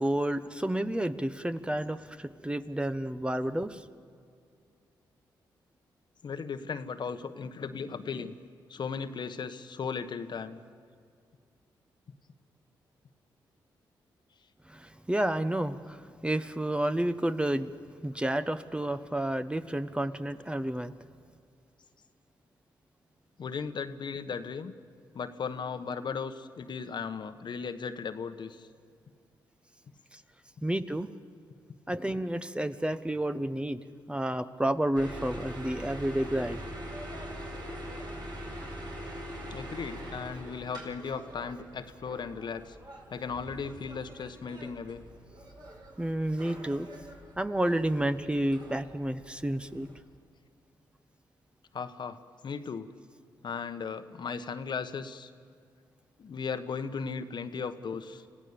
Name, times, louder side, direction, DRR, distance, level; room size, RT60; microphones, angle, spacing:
voice 1, 0.0-3.8 14.7-17.7 18.0-20.9 30.1-30.2 30.6-31.1 31.9-33.8 34.1-36.6 46.0-46.9 47.4-49.9, right 1 dB, 10° right, 11 dB, 1.0 m, -30 dB
voice 2, 6.2-8.3 8.7-10.6 23.4-24.7 25.1-28.7 39.5-42.8 43.1-45.0 51.7-52.9 53.4-55.3 56.2-58.2, left 5 dB, 60° left, 10 dB, 1.1 m, -36 dB
sound 1, 34.9-50.0, equal, 55° right, 5.3 m, -43 dB
26.0 x 16.0 x 7.0 m, 2.3 s
supercardioid pair, 50°, 9 cm